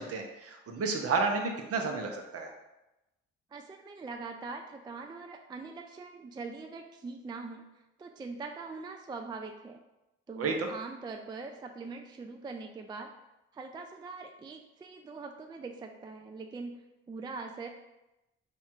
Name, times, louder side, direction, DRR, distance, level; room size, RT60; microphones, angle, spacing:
voice 1, 0.0-2.5 10.4-10.7, right 4 dB, 55° right, 3 dB, 0.8 m, -31 dB
voice 2, 3.5-9.8 10.3-13.1 13.5-17.7, right 4 dB, 15° right, 4 dB, 0.3 m, -42 dB
3.4 x 2.3 x 4.4 m, 0.96 s
hypercardioid pair, 55°, 29 cm